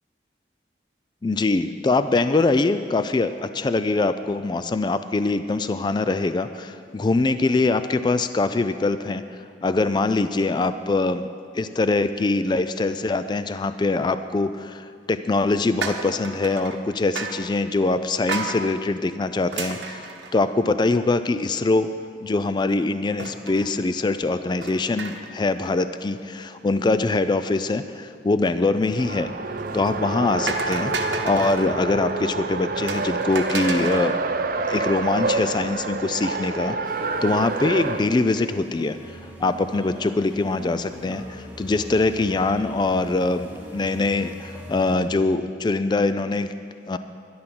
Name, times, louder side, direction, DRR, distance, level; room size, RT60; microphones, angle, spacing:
voice 1, 1.2-9.2 9.6-11.3 11.5-21.9 22.2-29.3 29.7-34.2 34.7-46.5 46.9-47.0, left 3 dB, 25° left, 11 dB, 0.3 m, -23 dB
sound 1, 15.8-16.8 17.2-17.5 18.3-18.6 19.5-20.9 21.3-21.4 21.6-21.7 23.2-23.7 24.6-25.4 25.7-26.0 29.6-29.9 30.5-31.7 32.9-34.1, right 4 dB, 80° right, 1.2 m, -32 dB
Race car auto racing, 28.8-38.0, right 3 dB, 50° right, 0.6 m, -27 dB
sound 2, 36.8-45.1, equal, 10° right, 1.6 m, -40 dB
12.5 x 11.5 x 6.0 m, 2.2 s
head